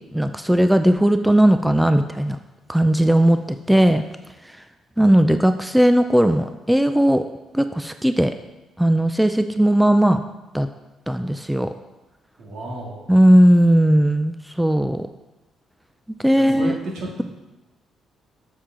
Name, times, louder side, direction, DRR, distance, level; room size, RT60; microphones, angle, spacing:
voice 1, 0.1-2.4 2.7-4.0 5.0-7.2 7.5-8.3 8.8-10.2 10.5-10.7 11.1-11.7 13.1-15.1 16.2-16.8, right 1 dB, 5° right, 8 dB, 0.4 m, -17 dB
voice 2, 12.4-13.1 16.4-17.2, right 1 dB, 80° right, -2 dB, 2.1 m, -32 dB
7.2 x 7.2 x 3.8 m, 1.1 s
cardioid pair, 90°, 0 cm